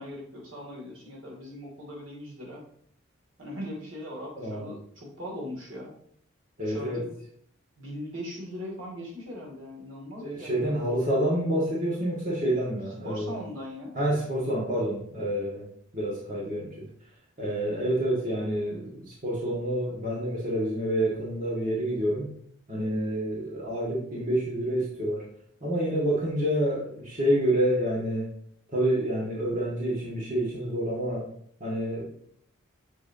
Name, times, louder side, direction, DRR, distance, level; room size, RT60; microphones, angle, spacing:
voice 1, 0.0-2.6 3.4-5.9 6.6-7.1 7.8-10.8 13.0-13.9, left 1 dB, 70° right, -3 dB, 2.6 m, -40 dB
voice 2, 4.4-4.7 6.6-7.0 10.2-13.4 13.9-15.6 15.9-16.9 17.4-22.3 22.7-25.2 25.6-28.3 28.7-31.2 31.6-32.1, right 1 dB, 40° right, -5 dB, 1.8 m, -28 dB
7.7 x 6.0 x 2.8 m, 0.65 s
head